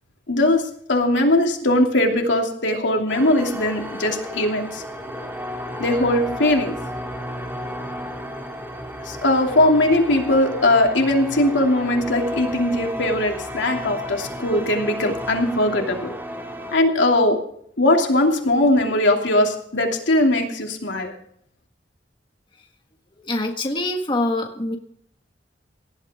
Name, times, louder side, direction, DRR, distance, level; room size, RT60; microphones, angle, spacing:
voice 1, 0.3-4.8 5.8-6.7 9.0-16.1 16.7-17.4 17.8-21.1, left 1 dB, 85° left, 2 dB, 2.9 m, -20 dB
sound 1, 3.1-16.8, equal, 15° right, 2.1 m, -33 dB
voice 2, 23.2-24.8, left 2 dB, 25° left, 3 dB, 1.5 m, -24 dB
18.5 x 12.0 x 3.7 m, 0.65 s
head